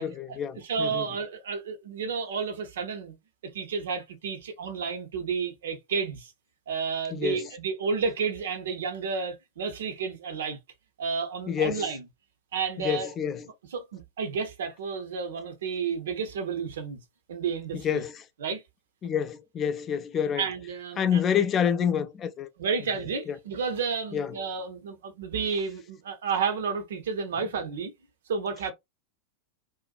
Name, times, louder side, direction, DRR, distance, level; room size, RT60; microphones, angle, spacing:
voice 1, 0.0-1.1 7.1-7.5 11.5-11.9 12.8-13.5 17.7-18.2 19.0-20.5 21.0-22.5 23.3-23.4 24.1-24.4, left 8 dB, 25° left, 0.4 m, -28 dB
voice 2, 0.6-3.2 3.5-6.3 6.7-10.6 11.0-12.0 12.5-13.1 13.7-17.0 17.3-18.0 18.4-18.6 20.4-21.2 22.6-27.9 28.3-28.7, right 5 dB, 60° right, 0.6 m, -31 dB
2.6 x 2.2 x 2.4 m
figure-of-eight pair, 90°, 0 cm